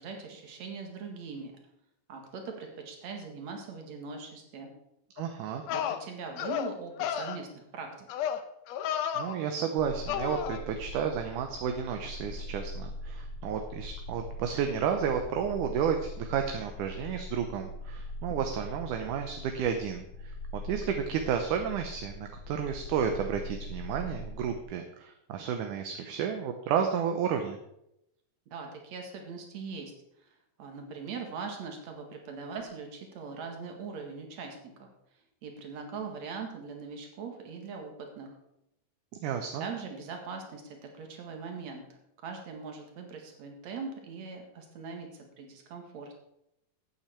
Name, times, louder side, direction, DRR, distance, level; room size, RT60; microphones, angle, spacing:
voice 1, 0.0-1.5 2.1-4.7 5.7-7.9 28.5-29.9 30.6-34.9 35.4-38.3 39.6-46.2, right 5 dB, 55° right, 3 dB, 2.9 m, -41 dB
sound 1, 5.2-5.3 5.7-6.0 6.4-6.7 7.0-7.4 8.1-8.4 8.7-9.3 10.1-10.6, left 9 dB, 80° left, 1.5 m, -32 dB
voice 2, 5.2-5.6 9.2-27.6 39.2-39.6, right 7 dB, 70° right, 5 dB, 2.1 m, -32 dB
sound 2, 9.8-24.6, left 1 dB, 65° left, 2.0 m, -42 dB
13.5 x 8.9 x 4.5 m, 0.81 s
omnidirectional pair, 4.1 m